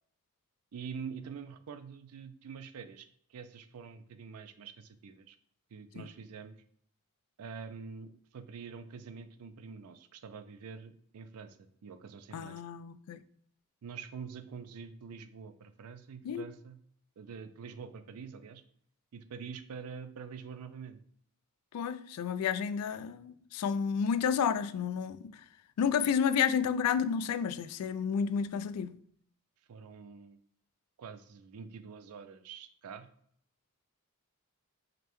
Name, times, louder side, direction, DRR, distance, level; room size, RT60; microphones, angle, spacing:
voice 1, 0.7-5.4 5.7-6.5 7.4-12.6 13.8-16.8 17.2-18.6 19.1-21.0 29.7-30.4 31.0-33.1, right 6 dB, 80° right, 0.4 m, -46 dB
voice 2, 12.3-13.2 16.2-16.5 21.7-25.4 25.8-28.9, left 7 dB, 85° left, 0.3 m, -31 dB
5.1 x 2.2 x 2.9 m
head